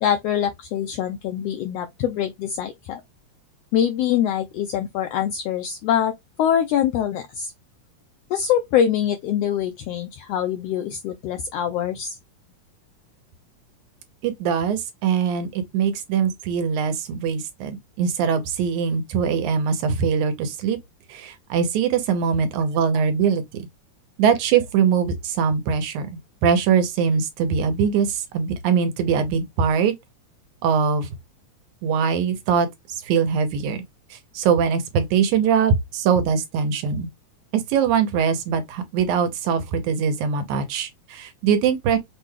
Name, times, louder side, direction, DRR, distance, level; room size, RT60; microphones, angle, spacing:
voice 1, 0.0-3.0 3.7-6.1 6.4-7.5 8.3-12.2, left 9 dB, 80° left, 1.4 m, -24 dB
voice 2, 14.2-20.8 21.1-23.4 24.2-26.1 26.4-29.9 30.6-31.1 31.8-32.7 33.0-33.8 34.1-37.1 37.5-42.0, right 6 dB, 85° right, 2.2 m, -22 dB
6.0 x 2.3 x 3.2 m
omnidirectional pair, 3.4 m